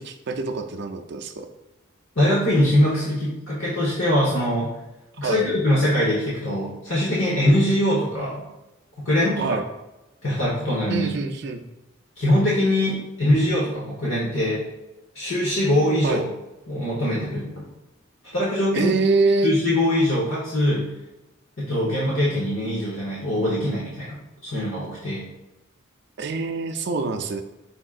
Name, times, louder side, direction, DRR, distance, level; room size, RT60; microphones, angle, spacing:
voice 1, 0.0-1.5 5.2-5.5 9.4-9.6 10.9-11.7 16.0-16.2 18.7-19.5 26.2-27.4, right 3 dB, 55° right, 5 dB, 0.4 m, -25 dB
voice 2, 2.2-4.8 5.2-8.5 9.0-9.5 10.2-11.1 12.2-14.6 15.1-16.2 16.7-17.7 18.3-19.0 19.4-20.9 21.6-25.3, left 1 dB, 75° left, -7 dB, 1.1 m, -22 dB
5.3 x 3.6 x 2.4 m, 0.99 s
head